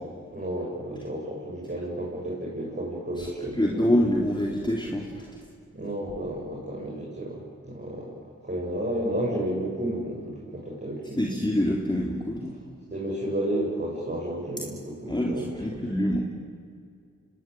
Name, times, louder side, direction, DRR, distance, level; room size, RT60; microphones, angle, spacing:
voice 1, 0.0-3.9 5.7-8.1 8.4-11.3 12.9-15.8, right 1 dB, 35° right, -4 dB, 6.8 m, -32 dB
voice 2, 3.5-5.4 11.2-12.5 15.1-16.2, left 1 dB, 15° left, -1 dB, 3.6 m, -26 dB
25.5 x 19.0 x 9.4 m, 2.2 s
cardioid pair, 45°, 30 cm